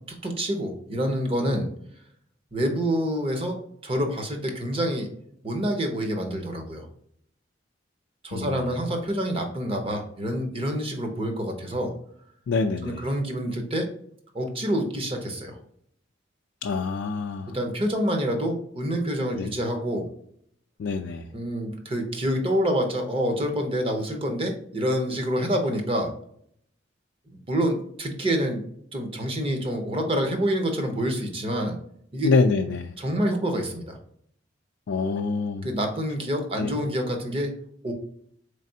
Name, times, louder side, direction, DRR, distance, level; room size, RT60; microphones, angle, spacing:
voice 1, 0.2-1.7 2.5-3.6 3.8-5.1 5.4-6.9 8.2-11.9 12.8-13.9 14.3-15.6 17.5-20.1 21.3-26.1 27.3-28.6 28.9-31.8 32.1-32.3 33.0-34.0 35.6-37.5 37.8-37.9, equal, 30° right, 3 dB, 0.8 m, -27 dB
voice 2, 8.3-8.7 12.5-13.0 16.6-17.6 19.3-19.5 20.8-21.3 32.2-33.0 34.9-35.7 36.6-36.7, left 4 dB, 70° left, 4 dB, 0.3 m, -26 dB
4.0 x 3.3 x 2.7 m, 0.65 s
head